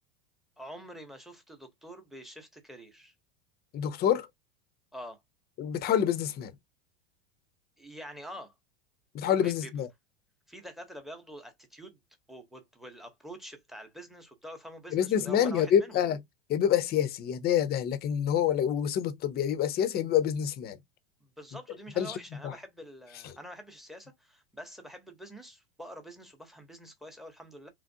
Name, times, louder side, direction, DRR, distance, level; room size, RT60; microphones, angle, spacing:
voice 1, 0.6-3.1 4.9-5.2 7.8-8.5 9.2-9.7 10.5-12.0 12.3-16.0 21.2-27.7, equal, ahead, 0.8 m, -46 dB
voice 2, 3.7-4.3 5.6-6.5 9.1-9.9 14.9-16.2 16.5-20.8 22.0-22.2 22.4-22.5, left 9 dB, 30° left, 0.6 m, -27 dB
3.0 x 2.4 x 2.7 m
hypercardioid pair, 105°, 31 cm